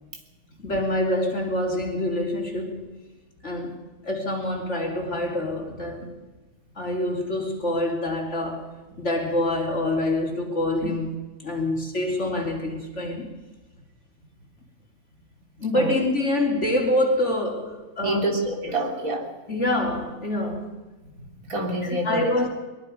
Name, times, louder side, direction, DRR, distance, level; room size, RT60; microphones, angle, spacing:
voice 1, 0.6-3.0 3.4-6.1 6.8-8.7 9.0-11.1 11.4-13.4 15.6-18.3 19.5-20.8 21.8-22.5, left 1 dB, 50° left, 3.5 m, -26 dB
voice 2, 18.0-19.3 21.2-22.3, right 1 dB, 65° right, 4.0 m, -27 dB
23.0 x 22.0 x 5.3 m
omnidirectional pair, 1.6 m